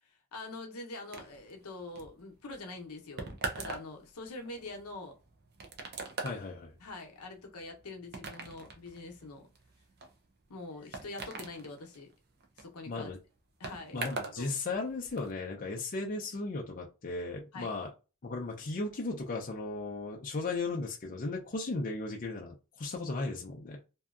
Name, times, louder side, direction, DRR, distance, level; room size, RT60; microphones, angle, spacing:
voice 1, 0.3-5.1 6.8-9.5 10.5-12.1 12.6-13.1 13.6-14.0 14.4-14.6 17.5-17.7, left 2 dB, 80° left, 0.7 m, -44 dB
sound 1, 1.1-14.4 14.7-15.3, right 3 dB, 45° right, 0.5 m, -43 dB
voice 2, 6.2-6.7 12.9-13.2 13.9-17.9 18.2-23.8, left 3 dB, 40° left, 0.5 m, -36 dB
2.7 x 2.3 x 2.3 m
head